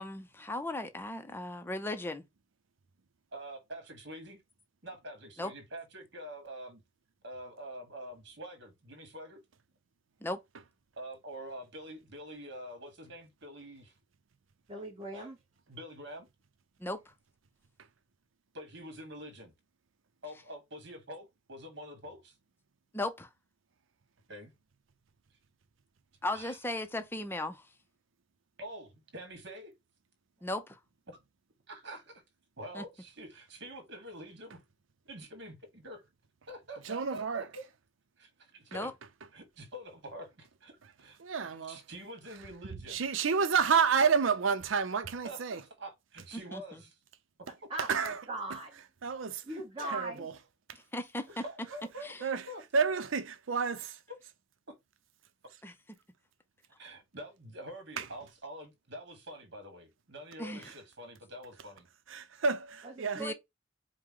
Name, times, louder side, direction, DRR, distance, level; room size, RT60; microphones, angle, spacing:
voice 1, 0.0-2.2 5.4-5.5 10.2-10.4 16.8-17.0 22.9-23.3 26.2-27.6 30.4-30.8 32.8-32.9 38.7-38.9 46.5-46.6 50.7-51.3 52.0-52.2 55.6-55.7 60.4-60.7 63.2-63.3, left 1 dB, 10° left, 0.5 m, -36 dB
voice 2, 3.3-4.4 4.8-6.8 7.2-9.4 11.0-13.9 15.1-15.2 15.7-16.3 18.5-19.5 20.2-22.3 24.3-24.5 26.3-26.6 28.6-29.7 31.1-31.2 31.7-32.2 32.6-34.6 35.0-36.0 36.5-37.6 38.2-38.9 39.3-41.2 41.7-43.0 45.2-47.0 49.8-49.9 51.4-52.6 54.7-54.8 56.8-61.9, right 1 dB, 60° right, 1.5 m, -46 dB
voice 3, 14.7-15.3 47.7-48.8 49.4-50.3 62.8-63.3, right 2 dB, 30° right, 1.0 m, -39 dB
voice 4, 36.8-37.5 41.2-41.8 42.9-45.6 47.8-48.2 49.0-49.4 49.9-50.3 52.2-52.4 52.7-54.0 58.0-58.1 62.1-63.2, right 5 dB, 85° right, 0.6 m, -29 dB
4.9 x 2.1 x 3.7 m
head